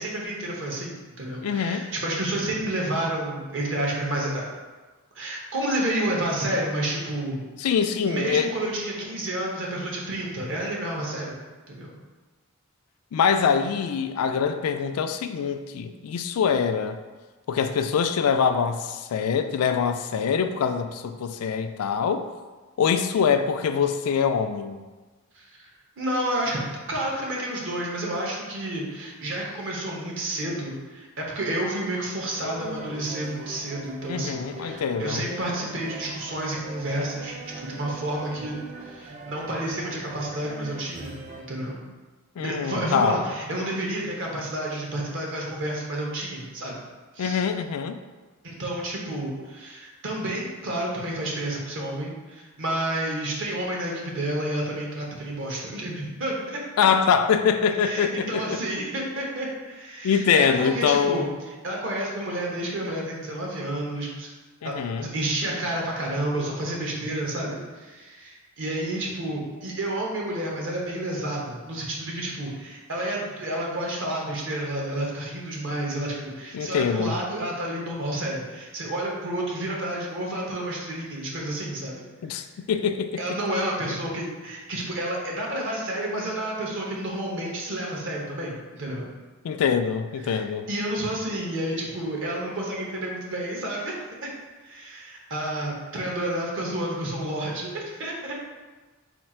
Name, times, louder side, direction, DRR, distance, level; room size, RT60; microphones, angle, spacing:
voice 1, 0.0-4.5 5.1-7.4 8.0-11.4 11.7-11.9 25.3-25.7 26.0-26.6 26.9-41.2 41.5-41.8 42.4-46.8 47.1-47.4 48.4-56.6 57.8-61.3 61.6-64.3 64.6-82.0 83.2-89.0 90.2-90.4 90.7-94.0 94.2-94.3 94.6-98.3, right 1 dB, 60° right, -2 dB, 1.0 m, -30 dB
voice 2, 1.4-1.9 7.6-8.5 13.1-17.0 17.5-22.3 22.8-24.8 34.1-35.2 42.4-43.2 47.2-48.0 56.8-58.6 60.0-61.4 64.6-65.1 76.5-77.2 82.2-83.2 89.4-90.7, left 6 dB, 90° left, 9 dB, 0.3 m, -24 dB
sound 1, 32.3-41.4, right 2 dB, 30° right, 0.4 m, -41 dB
4.4 x 2.4 x 4.3 m, 1.3 s
head